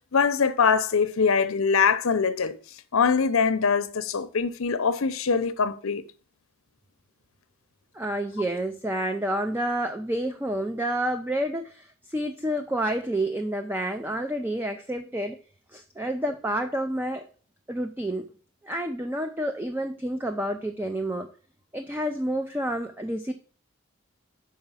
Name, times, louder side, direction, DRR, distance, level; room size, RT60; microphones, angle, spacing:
voice 1, 0.1-2.5 2.9-6.0, left 5 dB, 75° left, 0.6 m, -23 dB
voice 2, 7.9-15.4 15.7-17.3 17.7-18.3 18.6-21.3 21.7-23.3, right 1 dB, 10° right, 0.4 m, -29 dB
5.8 x 4.8 x 5.6 m
head